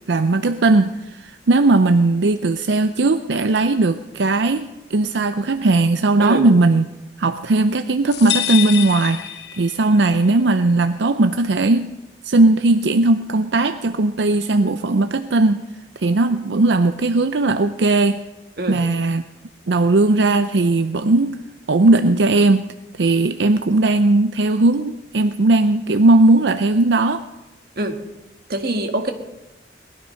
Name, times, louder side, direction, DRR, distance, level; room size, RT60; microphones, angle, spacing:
voice 1, 0.1-6.9 7.2-11.9 12.2-15.6 16.0-18.2 18.7-19.2 19.7-21.4 21.7-22.6 23.0-27.2, right 2 dB, 80° right, 10 dB, 0.6 m, -17 dB
sound 1, 8.1-10.0, left 11 dB, 70° left, 0.9 m, -26 dB
voice 2, 28.5-29.1, right 1 dB, 55° right, 5 dB, 1.7 m, -24 dB
19.5 x 12.5 x 5.8 m, 1.0 s
head